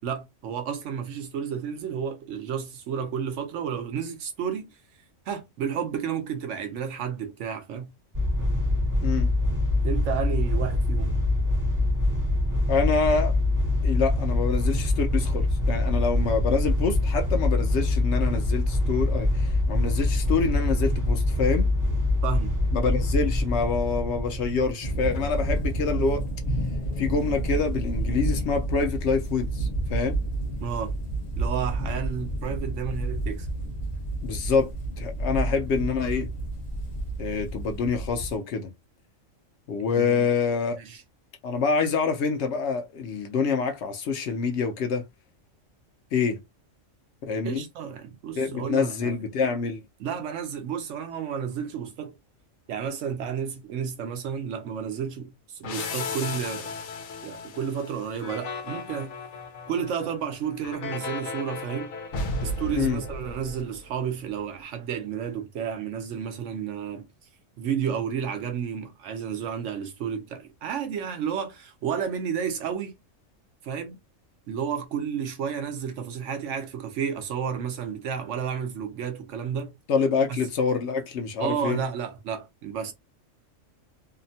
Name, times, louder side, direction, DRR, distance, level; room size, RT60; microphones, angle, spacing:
voice 1, 0.0-4.7 5.3-7.9 9.8-11.2 22.2-22.5 30.6-30.9 31.4-33.5 40.0-40.3 40.7-41.0 47.4-49.2 50.0-52.1 52.7-56.7 57.2-59.2 59.7-62.0 62.4-67.1 67.6-73.0 73.6-74.0 74.5-79.7 80.3-80.4 81.4-82.9, right 7 dB, 70° right, 0.9 m, -31 dB
sound 1, 8.1-24.7, left 2 dB, 20° right, 0.6 m, -24 dB
voice 2, 12.7-13.3 13.8-21.7 22.7-26.3 27.0-30.2 34.2-34.7 35.0-36.3 37.2-38.7 39.7-40.8 41.4-45.1 46.1-46.4 47.3-47.6 48.4-49.8 62.7-63.0 79.9-81.8, left 5 dB, 65° left, 0.8 m, -26 dB
sound 2, 24.8-38.4, right 1 dB, 35° left, 0.9 m, -30 dB
sound 3, 55.6-64.1, left 2 dB, 85° left, 1.1 m, -35 dB
2.8 x 2.1 x 2.6 m
omnidirectional pair, 1.3 m